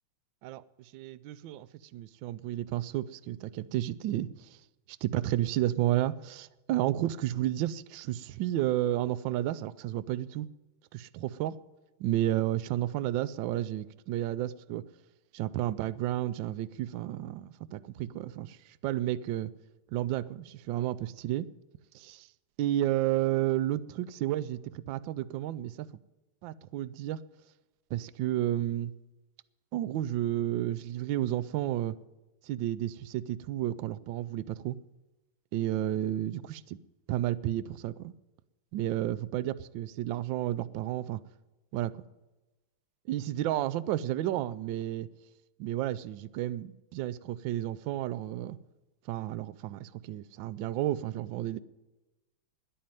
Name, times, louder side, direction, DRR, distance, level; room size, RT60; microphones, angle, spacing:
voice 1, 0.4-1.7 1.9-4.6 5.0-10.5 10.9-11.6 12.0-14.8 15.3-19.5 19.9-21.5 21.9-22.3 22.6-25.9 26.4-27.2 27.9-28.9 29.7-31.9 32.4-34.8 35.5-36.8 37.1-38.1 38.7-41.2 41.7-42.0 43.1-45.1 45.6-48.6 49.1-51.6, right 13 dB, 75° right, 1.2 m, -32 dB
11.0 x 8.7 x 9.0 m
omnidirectional pair, 2.4 m